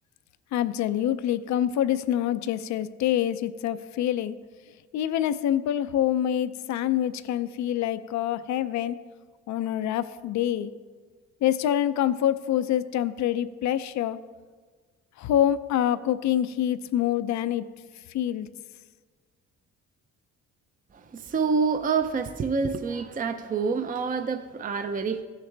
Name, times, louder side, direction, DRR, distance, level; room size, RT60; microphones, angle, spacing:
voice 1, 0.5-4.4 4.9-9.0 9.5-10.7 11.4-14.2 15.2-17.7 18.1-18.5, left 11 dB, 70° left, 13 dB, 0.5 m, -26 dB
voice 2, 20.9-25.2, right 5 dB, 30° right, 8 dB, 0.5 m, -27 dB
16.0 x 6.6 x 3.3 m, 1.5 s
cardioid pair, 90°, 30 cm